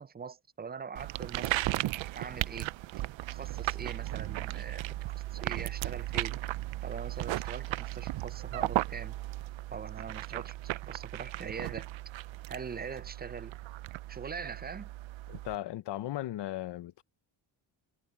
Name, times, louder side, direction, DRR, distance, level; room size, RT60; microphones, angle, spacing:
voice 1, 0.0-1.6 2.2-2.7 3.3-4.9 5.1-6.4 6.8-9.2 9.7-11.9 12.5-13.5 14.1-14.9, right 6 dB, 25° right, 0.4 m, -42 dB
sound 1, 1.0-15.6, right 16 dB, 85° right, 0.6 m, -36 dB
voice 2, 15.3-17.0, left 14 dB, 65° left, 0.7 m, -37 dB
cardioid pair, 120°, 45 cm